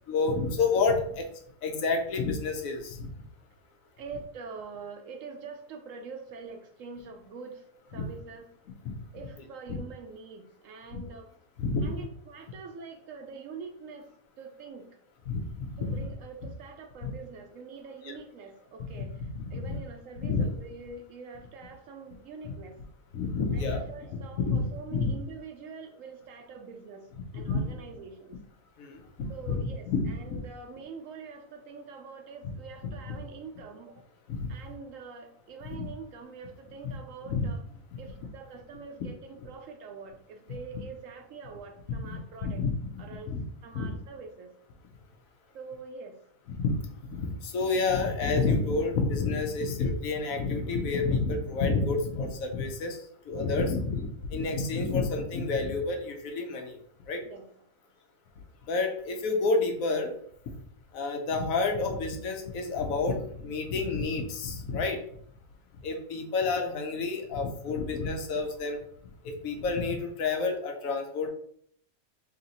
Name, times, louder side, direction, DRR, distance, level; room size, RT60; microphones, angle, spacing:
voice 1, 0.1-1.3 1.6-3.1 8.0-8.1 8.8-9.0 9.7-9.8 10.9-11.0 11.6-11.9 15.3-15.4 15.7-16.0 17.0-17.1 18.0-18.1 18.9-19.7 20.2-20.5 22.4-22.5 23.1-23.8 24.4-24.6 24.9-25.1 27.3-27.7 28.8-29.6 29.9-30.4 33.1-33.2 34.3-34.5 35.8-35.9 36.8-36.9 37.2-37.5 42.0-43.4 43.7-43.9 46.5-46.8 47.1-53.0 53.3-56.8 57.1-57.2 58.7-60.1 60.9-65.0 65.8-68.8 69.2-71.3, left 4 dB, 70° left, 4 dB, 1.0 m, -29 dB
voice 2, 4.0-7.6 7.9-8.4 9.1-11.3 11.8-14.1 14.4-14.9 15.8-19.1 19.5-22.8 23.5-27.1 27.3-28.4 29.3-34.0 34.5-37.6 38.0-42.6 43.0-43.3 43.6-44.5 45.5-46.2 57.3-57.4, right 5 dB, 70° right, 4 dB, 0.9 m, -44 dB
3.1 x 2.9 x 3.9 m, 0.63 s
omnidirectional pair, 1.6 m